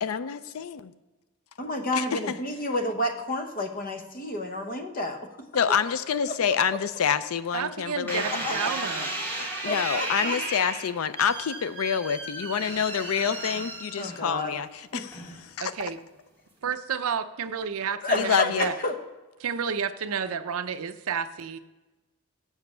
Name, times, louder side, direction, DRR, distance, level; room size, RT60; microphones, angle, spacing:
voice 1, 0.0-0.9 1.9-2.4 5.5-8.3 9.6-15.2 15.6-15.9 18.2-18.7, left 7 dB, 65° left, 13 dB, 0.4 m, -27 dB
voice 2, 1.6-5.3 8.3-8.7 9.6-10.4 14.0-14.5 14.9-15.1 18.0-18.5 18.8-18.9, left 1 dB, 40° left, 5 dB, 1.0 m, -30 dB
voice 3, 7.5-9.1 15.6-16.0 16.6-18.8 19.4-21.6, right 6 dB, 65° right, 11 dB, 0.5 m, -31 dB
sound 1, 8.1-14.5 15.1-15.6, right 2 dB, 10° left, 2.0 m, -34 dB
7.3 x 5.8 x 6.6 m, 1.1 s
head